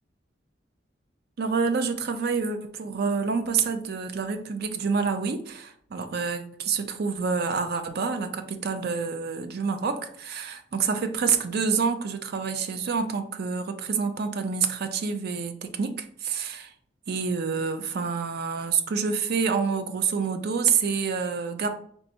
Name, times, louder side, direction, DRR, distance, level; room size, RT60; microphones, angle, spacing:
voice 1, 1.4-16.7 17.1-21.7, right 5 dB, 55° right, 9 dB, 0.4 m, -27 dB
4.2 x 3.4 x 2.8 m, 0.62 s
head